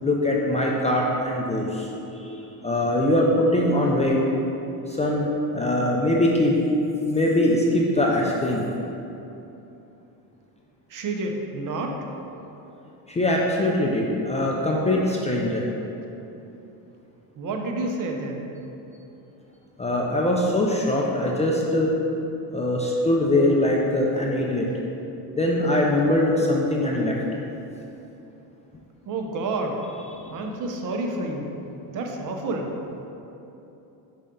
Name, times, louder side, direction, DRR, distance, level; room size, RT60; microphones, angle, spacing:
voice 1, 0.0-4.2 4.9-5.3 5.5-6.6 7.1-8.6 13.1-15.6 19.8-21.9 22.5-24.7 25.4-27.2, left 1 dB, 15° left, -2 dB, 0.4 m, -22 dB
voice 2, 10.9-12.0 17.4-18.4 29.1-29.8 30.3-31.5 31.9-32.8, right 2 dB, 45° right, 2 dB, 0.8 m, -29 dB
5.6 x 5.2 x 3.7 m, 3.0 s
cardioid pair, 130°, 42 cm